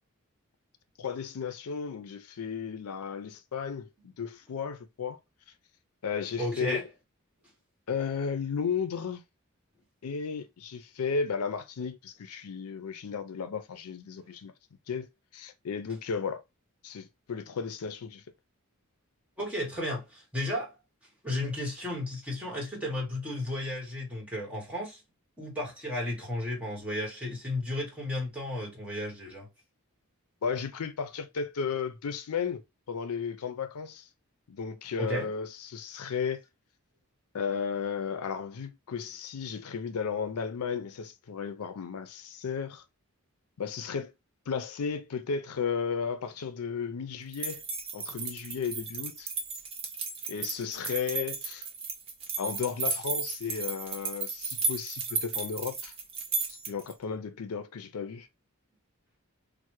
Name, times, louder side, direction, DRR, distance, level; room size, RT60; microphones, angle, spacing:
voice 1, 1.0-5.2 6.0-6.8 7.9-9.2 10.0-14.5 14.9-16.4 16.8-18.2 30.4-32.6 32.9-34.1 34.5-36.4 37.3-42.8 43.6-44.1 44.5-47.6 47.9-49.3 50.3-51.7 52.4-55.9 56.5-58.3, left 6 dB, 80° left, 0.5 m, -34 dB
voice 2, 6.4-6.8 19.4-20.7 21.2-25.0 25.4-29.5 35.0-35.3, left 1 dB, 5° right, 1.1 m, -33 dB
sound 1, 47.3-56.9, right 4 dB, 25° right, 0.6 m, -34 dB
3.2 x 2.1 x 3.0 m
head